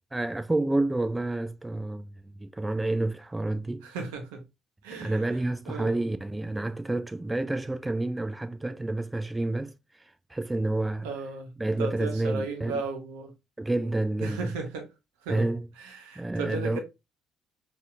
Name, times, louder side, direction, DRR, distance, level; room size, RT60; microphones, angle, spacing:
voice 1, 0.1-3.9 4.9-9.7 10.3-11.1 11.6-12.8 13.6-14.5 15.3-15.7 16.2-16.8, right 2 dB, 15° right, 0.3 m, -29 dB
voice 2, 3.8-4.4 4.8-5.2 5.7-6.0 11.0-11.5 11.8-13.3 14.2-14.9 15.2-15.5 15.8-16.8, right 4 dB, 75° right, 0.8 m, -35 dB
4.1 x 2.6 x 2.3 m
hypercardioid pair, 50°, 0 cm